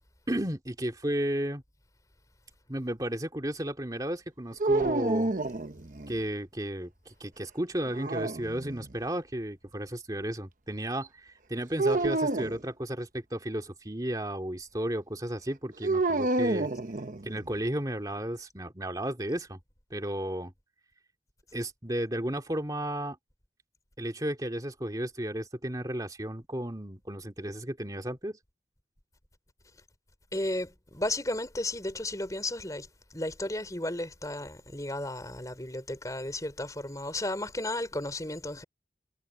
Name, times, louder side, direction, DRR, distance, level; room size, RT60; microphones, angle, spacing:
voice 1, 0.3-1.6 2.7-5.3 6.1-16.7 17.2-19.6 19.9-20.5 21.5-23.2 24.0-28.4, right 1 dB, 20° right, 2.6 m, -33 dB
sound 1, 4.6-6.2 7.8-8.9 11.8-12.6 15.8-17.5, right 2 dB, 45° right, 1.0 m, -29 dB
voice 2, 30.3-38.6, left 1 dB, 20° left, 4.3 m, -34 dB
head